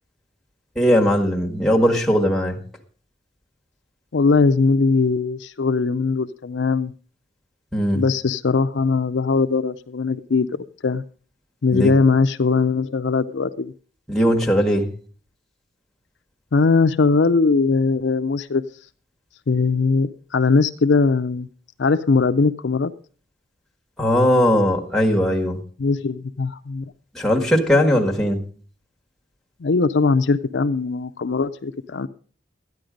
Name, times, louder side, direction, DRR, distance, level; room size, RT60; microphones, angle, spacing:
voice 1, 0.7-2.6 7.7-8.0 11.7-11.9 14.1-14.9 24.0-25.6 27.1-28.4, equal, ahead, -1 dB, 1.6 m, -19 dB
voice 2, 4.1-6.9 7.9-10.5 10.8-11.0 11.6-13.7 16.5-18.6 19.5-21.5 21.8-22.9 25.8-26.8 29.6-32.1, left 4 dB, 70° left, 10 dB, 0.5 m, -20 dB
13.0 x 9.9 x 5.1 m, 0.42 s
head